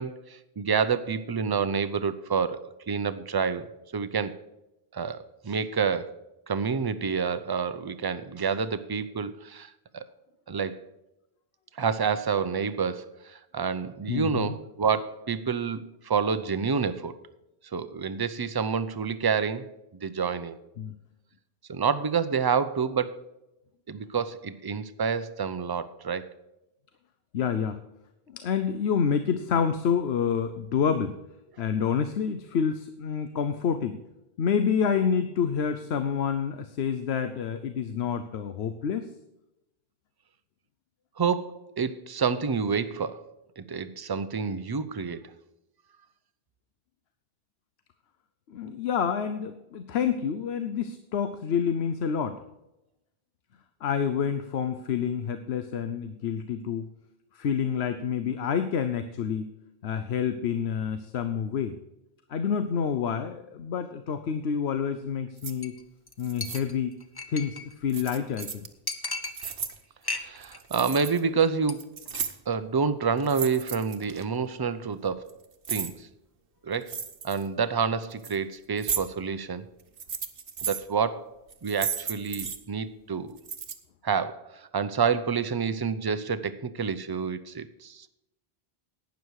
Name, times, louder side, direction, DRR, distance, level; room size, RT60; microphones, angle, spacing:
voice 1, 0.0-3.7 3.9-4.4 4.9-6.1 6.5-10.0 10.5-10.8 11.8-17.2 17.7-19.7 20.0-20.6 21.7-23.2 23.9-26.3 41.2-45.2 70.1-71.9 72.5-75.3 75.7-76.1 76.6-76.9 77.2-79.6 80.6-81.3 81.6-83.4 84.0-88.1, right 6 dB, 30° right, 12 dB, 0.5 m, -28 dB
voice 2, 14.1-14.6 20.8-20.9 27.3-27.8 28.3-31.2 31.6-34.0 34.4-39.1 48.5-52.4 53.8-56.8 57.3-59.5 59.8-61.8 62.3-65.8 66.2-67.0 67.3-68.7, left 7 dB, 90° left, 9 dB, 1.0 m, -28 dB
sound 1, 65.4-65.5 66.2-66.6 67.9-68.7 69.1-69.7 70.4-71.2 71.5-72.5 73.2-74.2 75.0-75.9 76.8-77.5 78.0-78.4 78.8-79.0 79.8-80.8 81.5-82.6 83.4-83.7, right 7 dB, 65° right, 1.2 m, -34 dB
Chink clink, 65.6-65.8 66.1-66.2 66.4-67.7 68.0-68.1 68.4-68.5 68.9-69.7 70.0-70.6 70.8-71.1 71.4-71.7 72.0-72.2, left 3 dB, 25° left, 0.8 m, -36 dB
12.0 x 9.3 x 4.7 m, 0.92 s
omnidirectional pair, 1.0 m